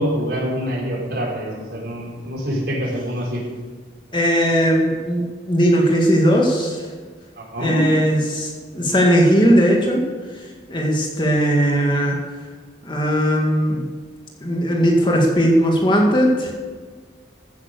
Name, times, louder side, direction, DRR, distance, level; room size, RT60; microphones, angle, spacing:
voice 1, 0.0-3.4 7.4-7.9, equal, 60° right, -4 dB, 5.0 m, -25 dB
voice 2, 4.1-6.9 7.6-10.0 10.3-12.2 12.8-13.9 14.4-16.5, equal, 25° left, -1 dB, 2.1 m, -18 dB
15.0 x 9.5 x 6.8 m, 1.5 s
head